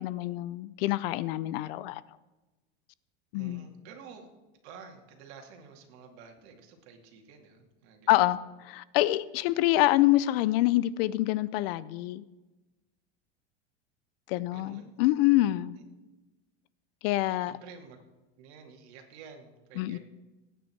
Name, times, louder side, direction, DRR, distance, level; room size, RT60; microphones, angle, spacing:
voice 1, 0.0-2.0 3.3-3.6 8.1-12.2 14.3-15.8 17.0-17.5 19.8-20.0, left 16 dB, 55° left, 0.5 m, -26 dB
voice 2, 3.3-4.3 4.6-8.1 14.5-15.0 17.5-18.0 18.4-20.0, right 6 dB, 60° right, 2.5 m, -50 dB
19.0 x 9.3 x 4.5 m
supercardioid pair, 155°, 36 cm